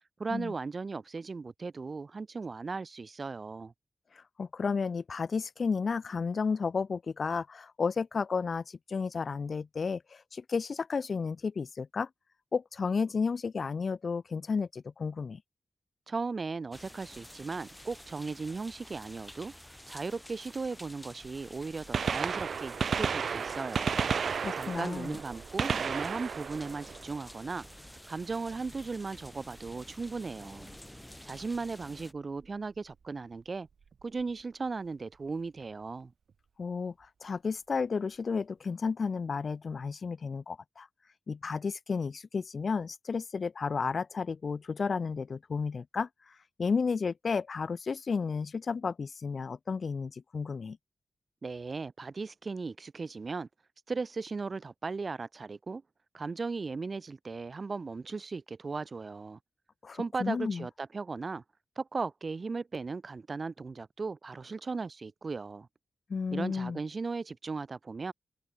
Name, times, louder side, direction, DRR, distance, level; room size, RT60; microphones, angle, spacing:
voice 1, 0.2-3.7 16.1-19.5 19.9-24.0 24.3-27.7 28.1-30.7 31.2-33.7 34.0-36.1 51.4-53.5 53.9-55.8 56.1-59.4 59.9-61.4 61.8-65.7 66.3-68.1, right 4 dB, 40° right, 1.6 m, -37 dB
voice 2, 4.1-12.1 12.5-15.4 24.3-25.2 36.6-36.9 37.2-40.9 41.3-50.8 59.8-60.7 66.1-66.8, left 5 dB, 50° left, 3.2 m, -32 dB
sound 1, 16.7-32.1, left 1 dB, 5° left, 6.3 m, -50 dB
Gunshot gunfire, 21.2-21.3 21.8-27.7 29.6-29.7 30.7-30.8 32.4-32.5 33.9-34.0 34.2-34.3, right 6 dB, 65° right, 1.8 m, -33 dB
wide cardioid pair, 140°, 0 cm